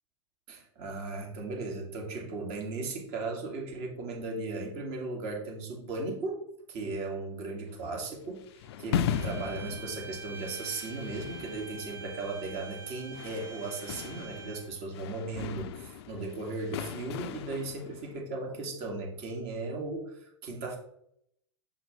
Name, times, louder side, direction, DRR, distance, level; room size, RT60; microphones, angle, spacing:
voice 1, 0.5-6.4 6.7-8.4 8.8-20.8, right 3 dB, 45° right, 0 dB, 2.3 m, -37 dB
sound 1, 7.7-18.2, left 8 dB, 60° left, 0.5 m, -38 dB
sound 2, 9.1-14.8, right 4 dB, 15° right, 1.3 m, -46 dB
6.3 x 5.5 x 3.3 m, 0.70 s
hypercardioid pair, 105°, 15 cm